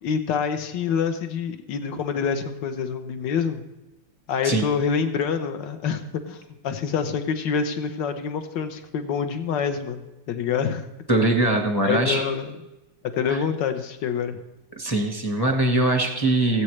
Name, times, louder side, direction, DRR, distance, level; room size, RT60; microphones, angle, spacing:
voice 1, 0.0-3.6 4.3-10.8 11.8-12.6 13.1-14.4, left 6 dB, 70° left, 8 dB, 1.5 m, -26 dB
voice 2, 11.1-12.2 13.3-13.4 14.8-16.6, right 2 dB, 15° left, 2 dB, 0.8 m, -22 dB
17.5 x 8.2 x 3.2 m, 1.0 s
omnidirectional pair, 2.1 m